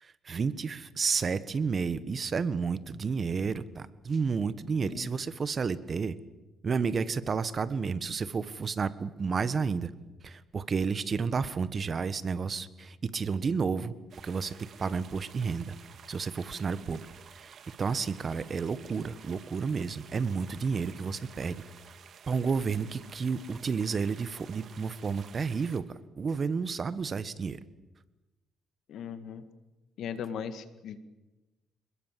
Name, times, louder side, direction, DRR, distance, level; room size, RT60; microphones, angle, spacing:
voice 1, 0.0-6.2 6.6-9.9 10.2-13.9 14.2-15.7 16.1-17.0 17.3-21.6 22.3-27.6, right 5 dB, 40° right, 15 dB, 1.4 m, -31 dB
sound 1, 14.1-25.8, right 7 dB, 60° right, 2.1 m, -52 dB
voice 2, 28.9-29.4 30.0-31.0, left 7 dB, 75° left, 11 dB, 2.0 m, -38 dB
28.0 x 21.0 x 7.6 m, 1.1 s
cardioid pair, 90°, 0 cm